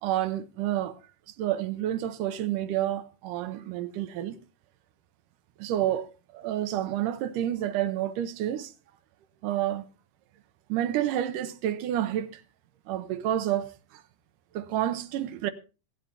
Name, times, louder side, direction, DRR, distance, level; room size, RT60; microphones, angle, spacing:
voice 1, 0.0-1.0 1.4-4.4 5.6-8.7 9.4-9.9 10.7-12.4 12.9-14.0 14.5-15.5, right 12 dB, 85° right, 2.4 m, -29 dB
25.0 x 9.3 x 2.9 m
omnidirectional pair, 3.7 m